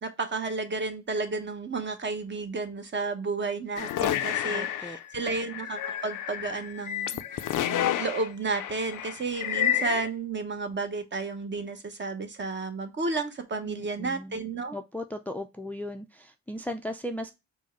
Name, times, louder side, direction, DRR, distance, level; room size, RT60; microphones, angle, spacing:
voice 1, 0.0-7.4 7.7-14.8, right 3 dB, 35° right, 6 dB, 0.8 m, -32 dB
sound 1, 3.8-10.1, left 11 dB, 85° left, 0.5 m, -30 dB
voice 2, 4.5-5.0 13.7-14.4 14.7-17.3, left 1 dB, 5° left, 6 dB, 0.4 m, -37 dB
4.5 x 2.1 x 4.4 m, 0.24 s
cardioid pair, 75°, 30 cm